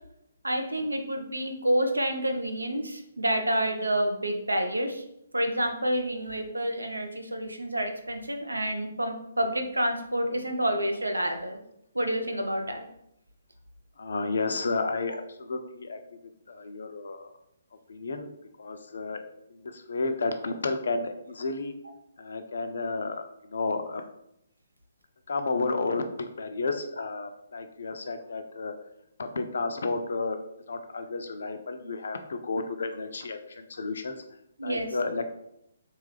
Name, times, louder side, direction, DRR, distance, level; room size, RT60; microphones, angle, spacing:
voice 1, 0.4-5.0 5.3-11.6 11.9-12.9 34.6-34.9, right 1 dB, 85° right, 5 dB, 0.5 m, -28 dB
voice 2, 14.0-16.0 16.5-17.3 17.9-18.3 18.6-21.7 22.2-24.0 25.3-28.7 29.2-30.4 30.7-34.2 34.6-35.2, left 3 dB, 60° left, 8 dB, 0.4 m, -32 dB
3.0 x 2.3 x 3.2 m, 0.79 s
figure-of-eight pair, 135°, 0 cm